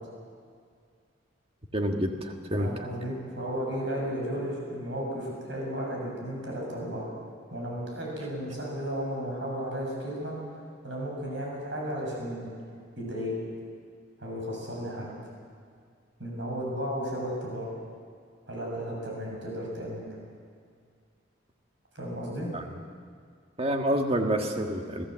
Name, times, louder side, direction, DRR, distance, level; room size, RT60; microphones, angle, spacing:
voice 1, 1.7-2.7 22.5-22.6 23.6-25.1, equal, 30° right, 3 dB, 1.6 m, -28 dB
voice 2, 2.6-7.1 7.5-10.3 10.8-12.5 13.0-13.3 14.2-15.1 16.2-17.7 18.5-20.0 21.9-22.5, equal, 70° right, -2 dB, 6.8 m, -34 dB
24.5 x 15.5 x 7.6 m, 2.1 s
head